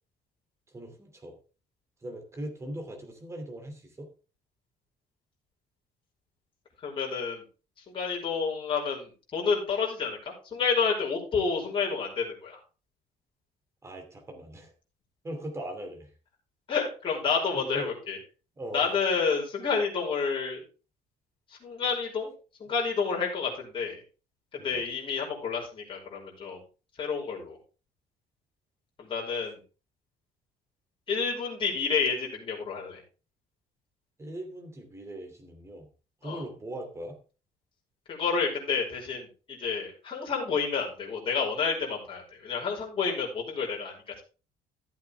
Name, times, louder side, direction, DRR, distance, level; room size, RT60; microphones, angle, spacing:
voice 1, 0.7-1.3 2.0-4.1 13.8-14.7 15.2-16.1 17.5-17.9 18.6-18.9 24.6-24.8 34.2-35.9 36.2-37.2, right 1 dB, 15° right, 4 dB, 2.8 m, -40 dB
voice 2, 6.8-7.4 7.9-12.6 16.7-18.2 18.7-20.6 21.5-22.3 22.6-24.0 24.5-26.6 27.0-27.6 29.0-29.6 31.1-33.0 36.2-36.4 38.1-44.2, left 5 dB, 30° left, -2 dB, 5.2 m, -29 dB
14.0 x 8.1 x 3.6 m, 0.35 s
cardioid pair, 160°, 16 cm